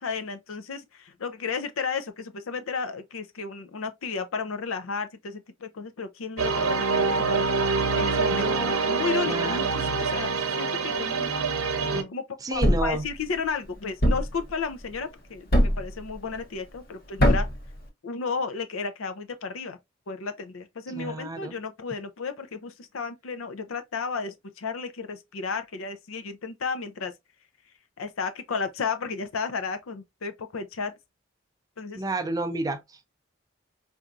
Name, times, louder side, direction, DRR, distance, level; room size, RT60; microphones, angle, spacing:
voice 1, 0.0-7.5 8.0-8.5 8.8-11.3 11.9-17.5 18.0-19.8 20.1-27.1 28.0-30.9 31.8-32.0, left 5 dB, 85° left, 0.6 m, -33 dB
sound 1, 6.4-12.0, right 4 dB, 90° right, 0.7 m, -25 dB
voice 2, 8.3-8.8 9.2-9.9 12.4-13.1 20.9-21.5 31.9-33.1, right 2 dB, 15° right, 0.4 m, -31 dB
Thump thud, 12.6-13.0 14.0-14.4 15.5-15.9 17.2-17.6, equal, 45° left, 0.9 m, -20 dB
4.5 x 2.6 x 2.4 m
head